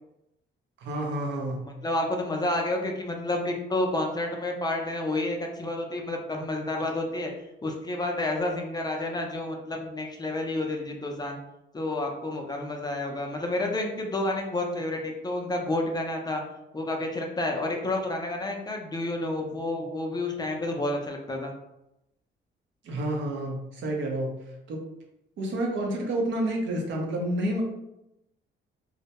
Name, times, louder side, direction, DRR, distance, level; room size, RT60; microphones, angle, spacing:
voice 1, 0.8-1.6 22.9-24.3 24.7-24.8 25.4-27.6, right 1 dB, 70° right, 0 dB, 0.6 m, -29 dB
voice 2, 1.8-7.3 7.6-11.4 11.7-16.4 16.7-21.5, left 2 dB, 20° left, 1 dB, 0.4 m, -30 dB
2.1 x 2.1 x 2.8 m, 0.87 s
cardioid pair, 90°, 20 cm